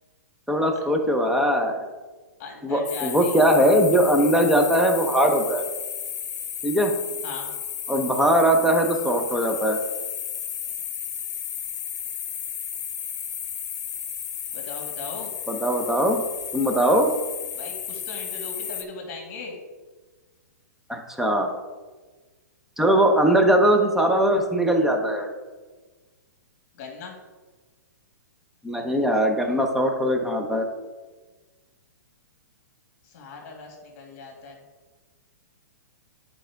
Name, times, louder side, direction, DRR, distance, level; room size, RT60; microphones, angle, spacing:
voice 1, 0.5-1.8 2.6-5.7 6.6-6.9 7.9-9.8 15.5-16.2 16.5-17.1 20.9-21.5 22.8-25.3 28.6-30.7, right 1 dB, 5° right, 3 dB, 0.8 m, -20 dB
voice 2, 2.4-3.5 7.2-7.5 14.5-15.3 17.6-19.6 26.8-27.2 33.0-34.6, left 3 dB, 45° left, 1 dB, 2.0 m, -38 dB
sound 1, 2.8-18.8, left 8 dB, 65° left, 0.9 m, -33 dB
9.9 x 5.0 x 3.5 m, 1.3 s
hypercardioid pair, 130°, 10 cm